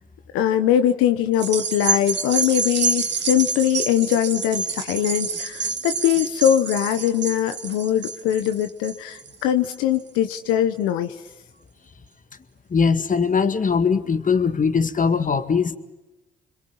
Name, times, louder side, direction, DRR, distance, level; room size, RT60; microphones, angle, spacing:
voice 1, 0.3-11.1, left 10 dB, 85° left, 8 dB, 1.0 m, -21 dB
sound 1, 1.3-10.0 10.5-10.6, right 5 dB, 60° right, 2.3 m, -27 dB
voice 2, 12.7-15.8, left 5 dB, 40° left, 10 dB, 2.0 m, -20 dB
26.5 x 22.5 x 8.7 m, 0.99 s
supercardioid pair, 55°, 21 cm